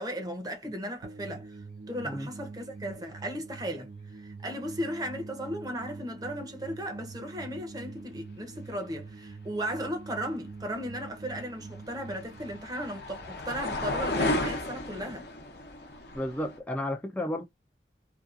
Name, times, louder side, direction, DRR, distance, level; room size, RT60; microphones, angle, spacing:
voice 1, 0.0-1.6 1.9-15.3, equal, 20° right, 0.7 m, -36 dB
sound 1, 1.0-14.1, right 4 dB, 65° right, 0.5 m, -45 dB
sound 2, 11.3-16.6, left 2 dB, 65° left, 0.7 m, -33 dB
voice 2, 16.1-17.4, left 1 dB, 10° left, 0.4 m, -32 dB
2.6 x 2.3 x 2.4 m
head